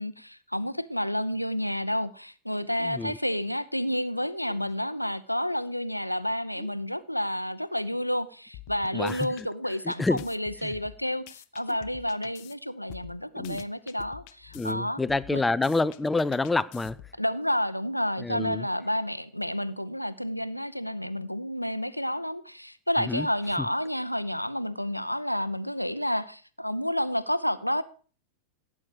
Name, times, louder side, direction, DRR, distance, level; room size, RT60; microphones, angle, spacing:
voice 1, 0.0-15.0 15.3-15.4 17.2-27.8, equal, 90° left, 0.7 m, -30 dB
voice 2, 2.8-3.2 8.9-9.5 9.8-10.2 10.6-10.7 13.4-13.6 14.5-17.0 18.2-18.7 23.1-23.3, left 3 dB, 10° left, 0.5 m, -28 dB
sound 1, 8.5-9.5 9.9-12.5 12.9-14.7 15.1-17.2, left 15 dB, 45° left, 0.8 m, -47 dB
16.5 x 8.5 x 4.9 m
figure-of-eight pair, 90°, 0 cm